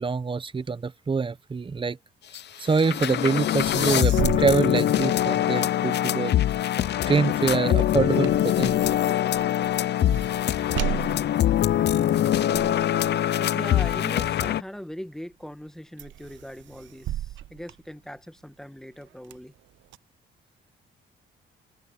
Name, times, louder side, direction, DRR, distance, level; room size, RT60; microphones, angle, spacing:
voice 1, 0.0-2.0 2.6-6.4 7.1-8.7, right 4 dB, 25° right, 0.9 m, -25 dB
sound 1, 2.3-2.4 2.7-14.6, left 11 dB, 60° left, 0.7 m, -23 dB
sound 2, 3.6-5.7 6.1-14.8 15.3-15.7 16.0-18.5 18.9-20.0, right 13 dB, 70° right, 0.7 m, -36 dB
voice 2, 13.4-19.5, equal, ahead, 1.6 m, -40 dB
cardioid pair, 90°, 20 cm